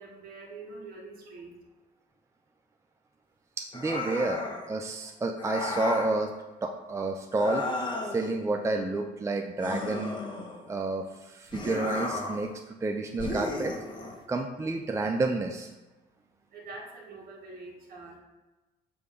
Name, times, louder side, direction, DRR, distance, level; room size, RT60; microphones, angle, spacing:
voice 1, 0.0-1.6 15.9-18.2, right 3 dB, 60° right, -1 dB, 1.8 m, -45 dB
voice 2, 3.6-4.4 4.7-6.3 6.6-7.6 8.1-10.2 10.7-13.7 14.3-15.7, right 2 dB, 15° right, 3 dB, 0.5 m, -30 dB
sound 1, 3.7-4.7 5.4-6.2 7.3-8.3 9.6-10.7 11.5-12.5 13.2-14.2, left 2 dB, 25° left, 1.1 m, -34 dB
6.7 x 3.4 x 5.2 m, 1.1 s
cardioid pair, 110°, 17 cm